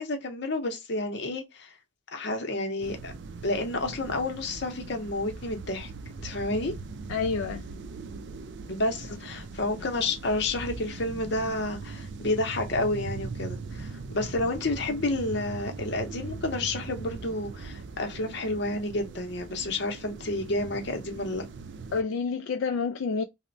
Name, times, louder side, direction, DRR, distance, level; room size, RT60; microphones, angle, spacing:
voice 1, 0.0-1.7 2.1-3.1 3.4-5.9 6.2-6.7 8.7-21.4, left 2 dB, 60° left, 0.7 m, -30 dB
sound 1, 2.8-22.0, right 4 dB, 60° right, 0.4 m, -40 dB
voice 2, 7.1-7.7 21.9-23.2, left 5 dB, 75° left, 0.3 m, -28 dB
3.0 x 2.1 x 2.5 m
head